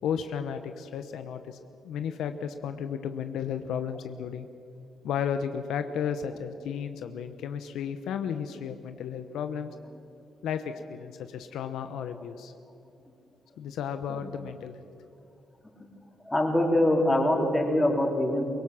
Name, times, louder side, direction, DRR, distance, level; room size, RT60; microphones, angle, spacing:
voice 1, 0.0-1.6 1.8-4.5 5.0-9.7 10.4-12.5 13.6-14.7, left 8 dB, 80° left, 9 dB, 0.9 m, -33 dB
voice 2, 16.2-18.4, left 1 dB, 10° left, 0 dB, 3.9 m, -24 dB
23.0 x 18.0 x 6.3 m, 2.5 s
cardioid pair, 90°, 0 cm